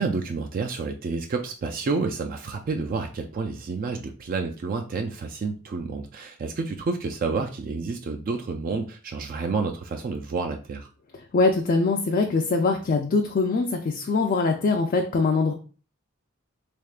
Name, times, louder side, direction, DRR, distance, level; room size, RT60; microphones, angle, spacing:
voice 1, 0.0-10.9, right 4 dB, 40° right, 4 dB, 0.3 m, -29 dB
voice 2, 11.3-15.5, left 3 dB, 40° left, 3 dB, 0.4 m, -23 dB
3.5 x 3.4 x 2.4 m, 0.37 s
head